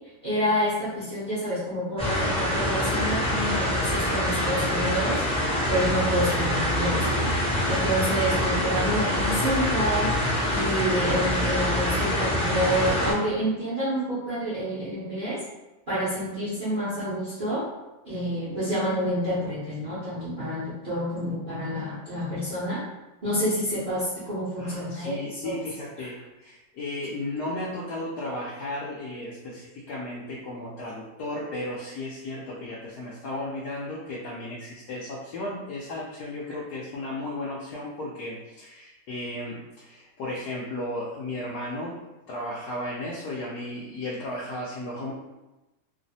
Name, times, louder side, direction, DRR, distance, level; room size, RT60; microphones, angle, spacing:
voice 1, 0.2-5.2 5.7-7.3 7.7-10.1 10.5-15.4 15.9-17.6 18.0-22.8 23.2-25.5, equal, 45° right, -11 dB, 0.7 m, -28 dB
sound 1, 2.0-13.1, left 1 dB, 10° left, 0.3 m, -25 dB
voice 2, 24.6-42.0 42.3-45.1, left 1 dB, 75° left, -6 dB, 1.0 m, -34 dB
3.1 x 2.0 x 2.6 m, 1.0 s
omnidirectional pair, 1.9 m